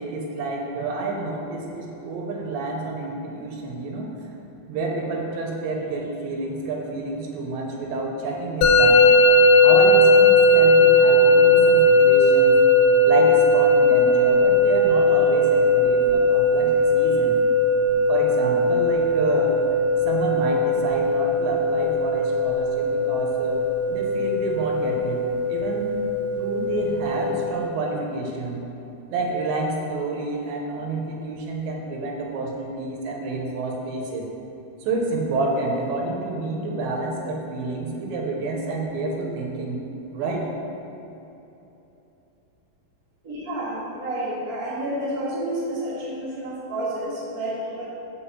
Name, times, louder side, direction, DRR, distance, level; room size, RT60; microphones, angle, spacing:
voice 1, 0.0-4.3 4.7-9.1 9.6-12.6 13.0-17.4 18.1-19.6 20.1-25.2 25.5-26.0 26.4-28.6 29.1-34.3 34.8-39.8 40.1-40.5, right 2 dB, 80° right, 0 dB, 3.0 m, -29 dB
Musical instrument, 8.6-27.5, left 1 dB, 85° left, 3.0 m, -18 dB
voice 2, 43.2-47.8, right 1 dB, 50° right, -8 dB, 1.0 m, -30 dB
7.2 x 4.7 x 7.1 m, 3.0 s
omnidirectional pair, 5.3 m